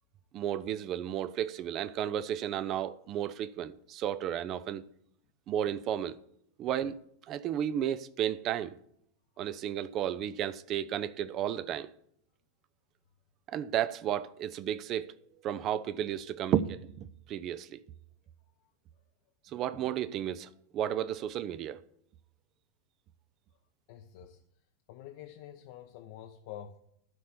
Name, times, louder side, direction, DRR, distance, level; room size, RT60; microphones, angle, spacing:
voice 1, 0.3-4.8 5.5-6.2 6.6-7.0 7.3-8.7 9.4-11.9 13.5-15.1 15.4-17.8 19.5-21.8, right 10 dB, 35° right, 0.5 m, -33 dB
voice 2, 23.9-24.4 24.9-26.8, left 10 dB, 50° left, 0.7 m, -47 dB
12.0 x 4.3 x 8.2 m
figure-of-eight pair, 90°, 0 cm